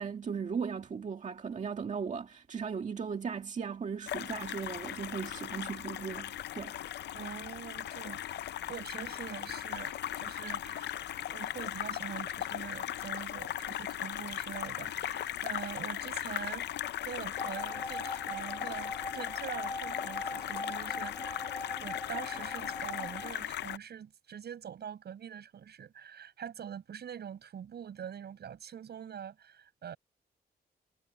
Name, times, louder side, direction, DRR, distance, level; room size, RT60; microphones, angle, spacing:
voice 1, 0.0-6.8, right 6 dB, 45° right, 1.8 m, -37 dB
sound 1, 4.1-23.8, left 11 dB, 90° left, 0.5 m, -38 dB
voice 2, 7.1-8.2 8.7-16.7 17.0-30.0, right 8 dB, 75° right, 6.8 m, -44 dB
sound 2, 17.4-23.3, left 2 dB, 20° left, 4.1 m, -41 dB
wide cardioid pair, 130°, 17 cm